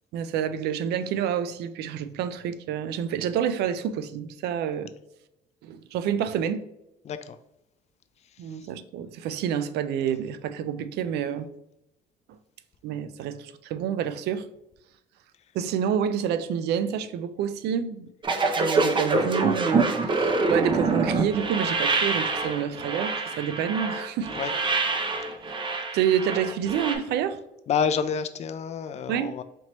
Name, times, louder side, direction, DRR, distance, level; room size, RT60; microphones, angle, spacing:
voice 1, 0.1-4.9 5.6-6.7 8.4-11.5 12.8-14.5 15.5-18.1 18.6-24.3 25.9-27.4 29.1-29.4, right 8 dB, 75° right, 0.4 m, -28 dB
voice 2, 7.0-7.4 24.3-24.5 27.7-29.4, left 6 dB, 40° left, 0.4 m, -28 dB
sound 1, 18.2-27.0, right 3 dB, 30° right, 0.6 m, -26 dB
4.4 x 2.9 x 2.9 m
cardioid pair, 110°, 17 cm